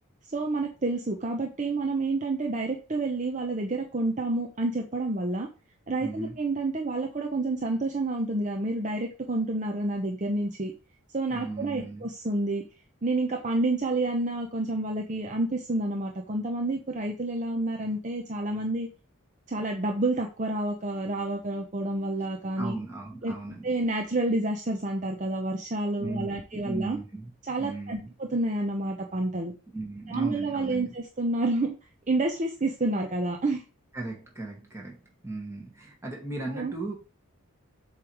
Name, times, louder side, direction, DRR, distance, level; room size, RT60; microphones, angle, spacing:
voice 1, 0.3-5.5 5.9-10.7 11.1-12.6 13.0-18.9 19.5-22.8 23.2-23.3 23.6-27.0 27.5-29.5 30.1-31.8 32.1-33.6 36.5-36.7, right 2 dB, 35° right, 2 dB, 0.7 m, -29 dB
voice 2, 6.0-6.4 11.3-12.1 22.6-23.7 26.0-27.3 27.6-28.1 29.7-30.9 33.9-35.0 35.2-36.9, right 2 dB, 15° right, -1 dB, 2.0 m, -36 dB
7.4 x 3.2 x 4.7 m, 0.32 s
head